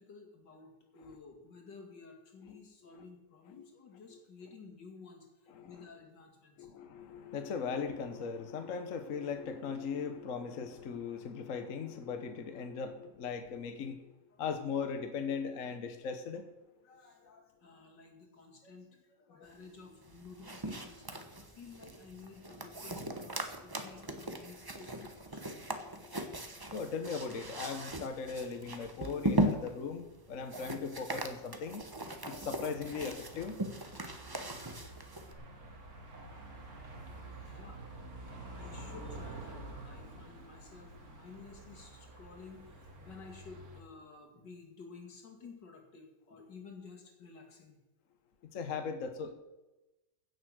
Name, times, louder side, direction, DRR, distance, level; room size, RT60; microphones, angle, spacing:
voice 1, 0.0-6.7 14.3-14.4 16.8-25.5 36.6-37.8 38.5-47.8, left 4 dB, 70° left, 2 dB, 2.9 m, -53 dB
voice 2, 5.5-5.8 6.6-14.0 14.4-16.5 26.0-26.1 26.7-31.8 32.3-33.6 48.5-49.3, left 5 dB, 50° left, 7 dB, 1.2 m, -38 dB
sound 1, 20.0-35.3, right 1 dB, 20° right, 0.6 m, -39 dB
sound 2, 32.6-43.8, right 2 dB, 50° right, 2.5 m, -49 dB
15.5 x 6.9 x 6.3 m, 1.0 s
omnidirectional pair, 2.0 m